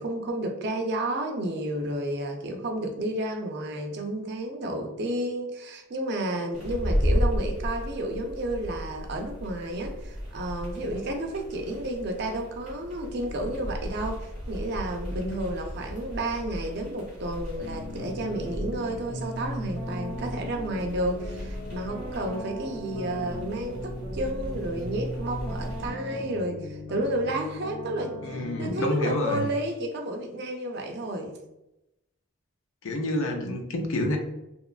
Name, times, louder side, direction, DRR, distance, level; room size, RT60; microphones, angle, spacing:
voice 1, 0.0-31.4, right 1 dB, 50° right, 3 dB, 0.4 m, -31 dB
sound 1, 6.5-25.9, equal, 5° right, 1.0 m, -34 dB
sound 2, 17.5-28.7, left 1 dB, 20° left, 0.9 m, -38 dB
voice 2, 28.2-29.5 32.8-34.2, left 1 dB, 70° left, 3 dB, 0.5 m, -28 dB
2.8 x 2.2 x 2.3 m, 0.90 s
head